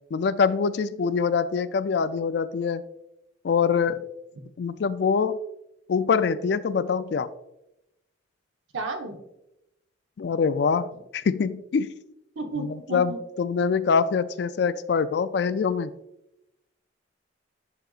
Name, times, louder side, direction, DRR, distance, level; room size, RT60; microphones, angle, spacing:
voice 1, 0.1-2.8 3.4-4.0 4.6-5.4 5.9-7.3 10.2-11.9 12.6-15.9, left 5 dB, 60° left, 14 dB, 0.3 m, -24 dB
voice 2, 8.7-9.2 12.4-13.2, right 2 dB, 85° right, 4 dB, 1.0 m, -32 dB
11.0 x 3.9 x 2.4 m, 0.86 s
head